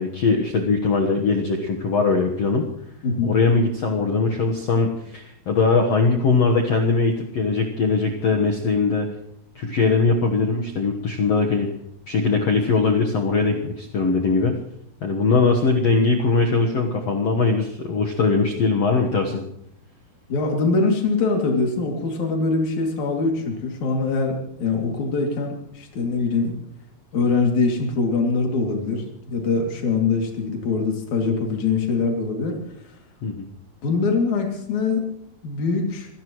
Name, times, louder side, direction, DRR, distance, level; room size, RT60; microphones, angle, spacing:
voice 1, 0.0-2.6 3.2-9.1 9.5-11.7 12.1-14.6 15.0-19.4 33.2-33.5, left 4 dB, 65° left, 1 dB, 1.6 m, -21 dB
voice 2, 3.0-3.3 20.3-26.5 27.1-32.6 33.8-35.1 35.4-36.1, left 4 dB, 50° left, 1 dB, 3.7 m, -23 dB
26.5 x 17.5 x 3.1 m, 0.76 s
omnidirectional pair, 4.8 m